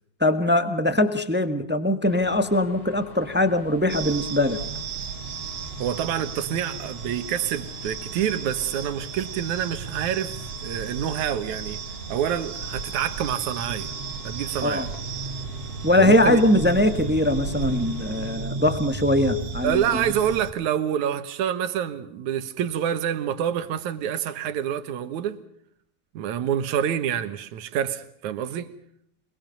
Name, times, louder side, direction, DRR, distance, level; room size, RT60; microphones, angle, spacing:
voice 1, 0.2-4.6 14.6-14.9 15.8-20.0, left 1 dB, 10° right, 0.5 m, -21 dB
sound 1, 2.0-18.4, left 3 dB, 80° left, 8.4 m, -45 dB
sound 2, 3.9-20.5, right 5 dB, 60° right, 3.2 m, -34 dB
voice 2, 5.8-10.4 10.6-11.8 12.1-13.9 14.2-14.9 16.0-16.4 19.6-25.4 26.1-28.7, right 9 dB, 75° right, 2.8 m, -27 dB
28.5 x 22.0 x 5.3 m
omnidirectional pair, 3.4 m